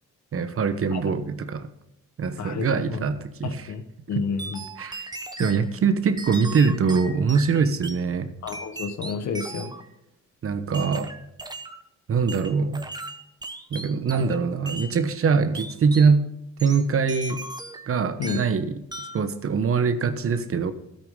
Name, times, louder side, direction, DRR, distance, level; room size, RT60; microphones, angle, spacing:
voice 1, 0.3-1.7 2.2-3.7 4.8-5.0 5.4-8.3 10.4-11.1 12.1-12.9 13.7-16.3 16.6-17.4 17.9-18.8 19.1-20.7, right 5 dB, 50° right, 11 dB, 1.1 m, -23 dB
voice 2, 2.4-3.0 3.4-4.6 5.4-5.7 8.4-9.7 18.2-18.4, left 5 dB, 65° left, 8 dB, 1.5 m, -31 dB
sound 1, 4.4-5.6 6.2-8.0 8.5-9.9 10.7-11.8 12.3-14.4 14.7-14.9 15.5-16.1 16.6-17.9 18.2-18.6 18.9-19.3, right 2 dB, 15° right, 1.1 m, -37 dB
12.5 x 8.5 x 3.8 m, 0.85 s
cardioid pair, 90°, 30 cm